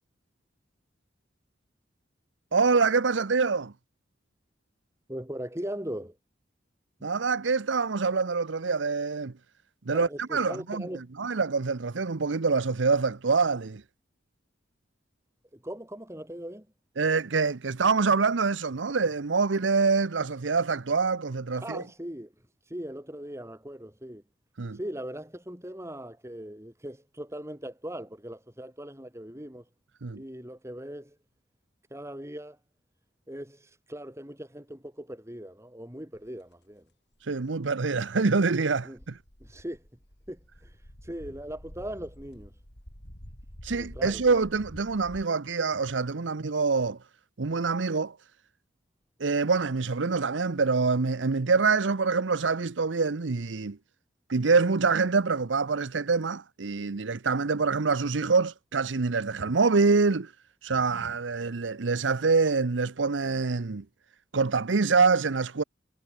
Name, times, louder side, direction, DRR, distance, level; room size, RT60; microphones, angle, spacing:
voice 1, 2.5-3.7 7.0-9.3 9.9-10.8 11.2-13.8 17.0-21.8 24.6-24.8 30.0-30.2 37.3-39.2 43.6-47.0 47.4-48.2 49.2-53.8 54.3-60.3 60.6-63.8 64.3-65.6, right 4 dB, 80° right, 0.8 m, -25 dB
voice 2, 5.1-6.2 7.0-7.1 9.9-11.1 15.5-16.7 21.5-22.3 22.7-24.2 24.7-29.7 30.2-31.2 31.9-32.6 33.3-36.9 38.8-39.0 39.4-39.8 40.3-40.8 41.0-42.5 43.8-44.4, right 1 dB, 15° right, 5.2 m, -39 dB
sound 1, 36.1-36.3 37.1-37.7 39.0-45.2, equal, 65° left, 7.2 m, -48 dB
head